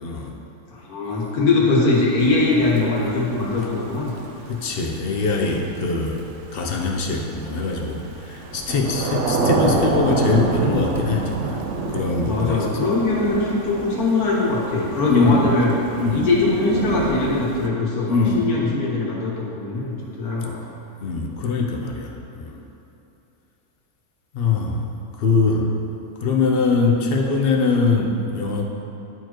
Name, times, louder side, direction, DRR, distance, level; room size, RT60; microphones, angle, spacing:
voice 1, 0.0-0.3 4.5-6.2 6.5-8.0 8.5-11.6 11.9-12.6 15.1-15.4 16.0-16.3 18.1-18.4 21.0-22.1 24.4-24.7 25.2-25.7 26.2-28.6, left 4 dB, 55° left, 0 dB, 0.7 m, -22 dB
voice 2, 0.7-4.1 12.2-15.7 16.1-20.5, left 3 dB, 75° left, -5 dB, 1.8 m, -21 dB
Thunder / Rain, 2.2-17.7, right 3 dB, 60° right, 0.8 m, -27 dB
11.0 x 4.5 x 3.0 m, 2.8 s
omnidirectional pair, 1.6 m